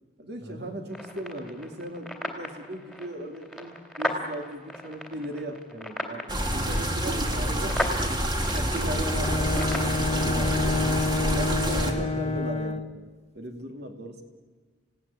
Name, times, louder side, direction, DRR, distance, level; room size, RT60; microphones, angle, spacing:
voice 1, 0.2-6.2 6.5-10.8 11.2-12.9 13.3-14.2, right 1 dB, 55° right, 4 dB, 2.8 m, -37 dB
sound 1, 0.9-10.0, equal, ahead, 2.9 m, -36 dB
sound 2, 6.3-11.9, right 1 dB, 20° right, 2.2 m, -27 dB
Bowed string instrument, 8.9-13.0, left 3 dB, 30° left, 0.7 m, -29 dB
voice 2, 11.7-12.4, equal, 70° right, 2 dB, 6.3 m, -39 dB
28.5 x 17.5 x 9.9 m, 1.5 s
head